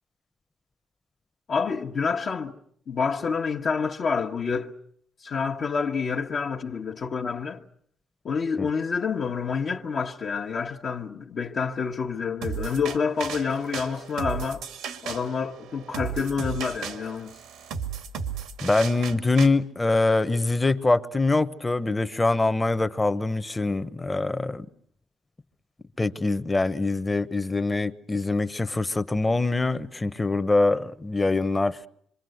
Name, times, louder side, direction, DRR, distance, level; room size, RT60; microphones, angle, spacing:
voice 1, 1.5-2.5 2.9-4.7 5.2-7.6 8.2-14.6 15.0-17.3, left 5 dB, 55° left, 1.4 m, -28 dB
sound 1, 12.4-19.5, right 7 dB, 90° right, 2.1 m, -35 dB
voice 2, 18.6-24.7 26.0-31.8, left 3 dB, 20° left, 1.1 m, -24 dB
26.5 x 24.5 x 8.0 m
cardioid pair, 90°, 0 cm